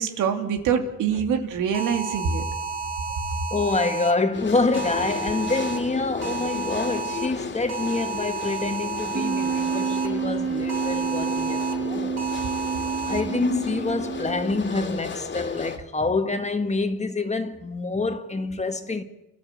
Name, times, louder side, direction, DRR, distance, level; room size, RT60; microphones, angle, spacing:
voice 1, 0.0-2.4, right 7 dB, 90° right, 2.6 m, -24 dB
sound 1, 1.7-4.1 4.7-5.8 6.2-7.3 7.7-10.1 10.7-11.7 12.2-13.2, right 5 dB, 65° right, 4.0 m, -32 dB
voice 2, 3.5-12.1 13.0-19.0, left 3 dB, 20° left, 1.8 m, -26 dB
sound 2, 4.3-15.8, left 5 dB, 40° left, 2.5 m, -35 dB
Wind instrument woodwind instrument, 9.1-14.8, right 6 dB, 45° right, 2.3 m, -29 dB
28.5 x 12.5 x 8.2 m
cardioid pair, 90°, 30 cm